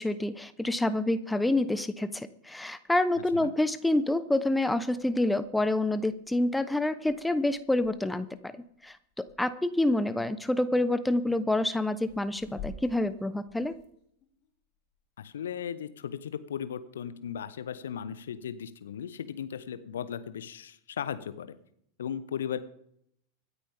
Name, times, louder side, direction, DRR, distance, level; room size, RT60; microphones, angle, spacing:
voice 1, 0.0-8.5 8.8-13.8, left 1 dB, 5° left, 13 dB, 0.9 m, -27 dB
sound 1, 2.8-16.1, left 5 dB, 35° left, 5.7 m, -53 dB
voice 2, 15.2-21.5 22.0-22.6, left 8 dB, 65° left, 13 dB, 1.1 m, -36 dB
25.0 x 9.6 x 3.6 m, 0.71 s
figure-of-eight pair, 90°, 0 cm